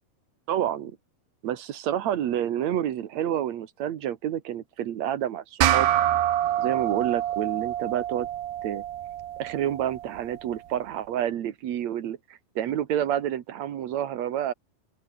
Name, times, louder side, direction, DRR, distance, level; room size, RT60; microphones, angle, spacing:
voice 1, 0.5-0.9 1.4-5.9 6.6-8.3 8.6-8.8 9.4-14.5, right 10 dB, 55° right, 2.2 m, -29 dB
sound 1, 5.6-10.4, right 12 dB, 90° right, 3.7 m, -26 dB
omnidirectional pair, 4.5 m